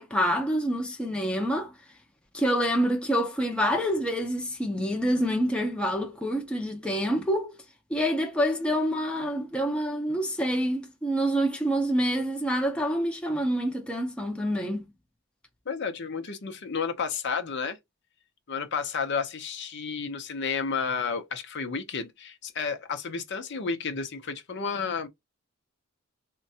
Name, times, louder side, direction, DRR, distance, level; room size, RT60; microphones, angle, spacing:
voice 1, 0.0-1.7 2.3-7.6 7.9-14.9, equal, 5° left, 0.6 m, -27 dB
voice 2, 15.7-17.8 18.5-25.1, left 5 dB, 55° left, 0.6 m, -31 dB
3.7 x 2.2 x 2.7 m
head